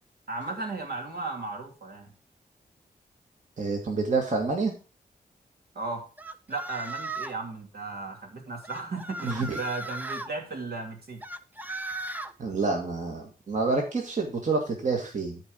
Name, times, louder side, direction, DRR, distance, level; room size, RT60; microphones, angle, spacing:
voice 1, 0.3-2.1 5.7-6.0 6.5-11.2, right 3 dB, 75° right, 2 dB, 2.7 m, -35 dB
voice 2, 3.6-4.7 9.2-9.6 12.4-15.4, right 3 dB, 50° right, 1 dB, 2.0 m, -28 dB
sound 1, 6.2-7.4 8.6-10.3 11.2-12.3, right 2 dB, 10° right, 0.7 m, -36 dB
13.0 x 4.5 x 5.3 m, 0.34 s
wide cardioid pair, 95°, 16 cm